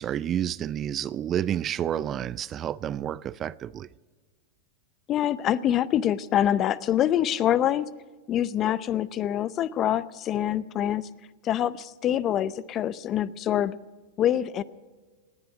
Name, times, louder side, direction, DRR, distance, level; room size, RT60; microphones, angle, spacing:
voice 1, 0.0-3.9, right 10 dB, 30° right, 0.4 m, -30 dB
voice 2, 5.1-7.9 8.3-11.1 11.4-13.8 14.2-14.6, left 11 dB, 35° left, 0.6 m, -25 dB
19.0 x 7.7 x 9.7 m
hypercardioid pair, 110°, 0 cm